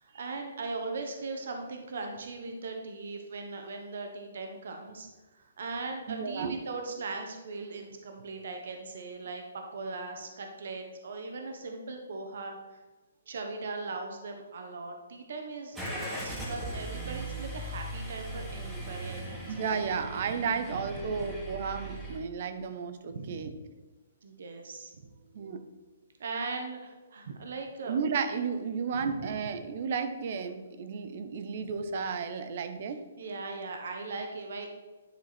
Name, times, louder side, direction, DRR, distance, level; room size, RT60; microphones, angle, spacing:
voice 1, 0.0-5.1 5.3-12.8 13.3-15.8 16.2-19.7 20.4-20.8 23.1-23.5 24.2-24.9 26.2-27.9 28.9-29.3 33.2-34.7, right 3 dB, 65° right, 3 dB, 1.1 m, -39 dB
voice 2, 6.1-6.6 19.5-23.5 25.3-25.6 27.9-33.0, right 5 dB, 45° right, 9 dB, 0.8 m, -33 dB
Car / Engine starting, 15.7-22.2, right 1 dB, 5° right, 1.6 m, -39 dB
10.5 x 4.6 x 4.3 m, 1.2 s
hypercardioid pair, 165°, 0 cm